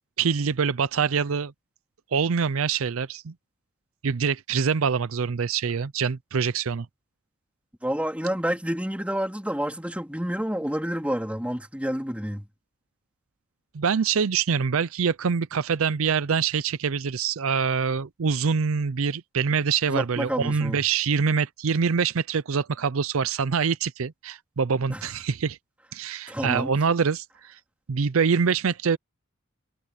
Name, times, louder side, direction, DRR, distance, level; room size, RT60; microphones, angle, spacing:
voice 1, 0.2-1.5 2.1-3.3 4.0-6.9 13.7-25.6 25.9-27.6 27.9-29.0, right 6 dB, 70° right, 0.5 m, -25 dB
voice 2, 7.8-12.5 19.9-20.8 24.9-25.0 26.3-26.7, equal, 5° right, 3.3 m, -29 dB
head